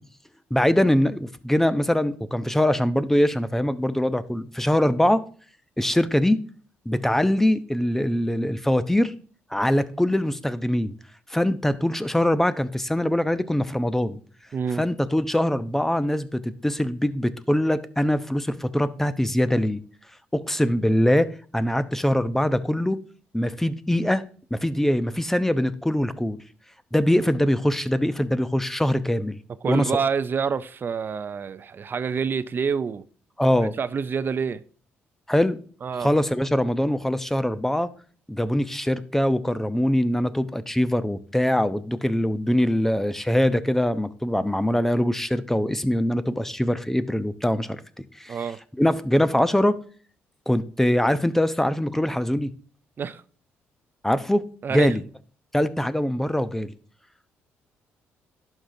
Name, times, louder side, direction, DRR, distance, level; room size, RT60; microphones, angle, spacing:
voice 1, 0.5-5.2 5.8-6.4 6.9-9.1 9.5-10.9 11.3-14.2 14.8-19.8 20.3-23.0 23.3-24.2 24.5-26.4 26.9-29.4 29.7-29.9 33.4-33.7 35.3-35.6 36.0-37.9 38.3-47.8 48.2-48.4 48.8-49.8 50.5-52.5 54.0-54.4 54.7-55.0 55.5-56.7, left 1 dB, 5° left, 13 dB, 0.7 m, -23 dB
voice 2, 14.5-14.8 29.6-33.0 33.8-34.6 35.8-36.1 48.3-48.6 53.0-53.2 54.6-54.9, right 6 dB, 45° right, 15 dB, 0.5 m, -27 dB
11.0 x 5.9 x 2.7 m, 0.43 s
supercardioid pair, 65°, 5 cm